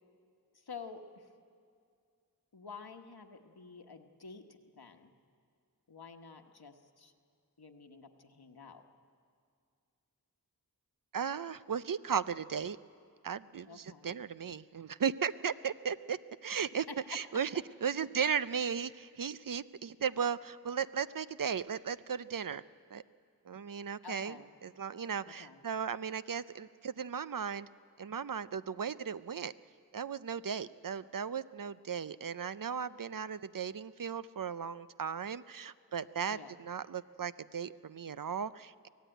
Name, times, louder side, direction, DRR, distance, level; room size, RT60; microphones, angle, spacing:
voice 1, 0.5-1.3 2.5-5.1 5.9-7.1 7.6-8.9 13.7-14.2 16.9-17.2 24.0-24.5 25.2-25.6 36.3-36.5, left 5 dB, 80° left, 5 dB, 1.3 m, -49 dB
voice 2, 11.1-12.8 13.2-22.6 22.9-23.0 23.5-24.4 24.6-27.7 28.0-29.5 29.9-38.9, right 7 dB, 60° right, 15 dB, 0.5 m, -36 dB
24.0 x 16.5 x 9.1 m, 2.3 s
wide cardioid pair, 50°, 37 cm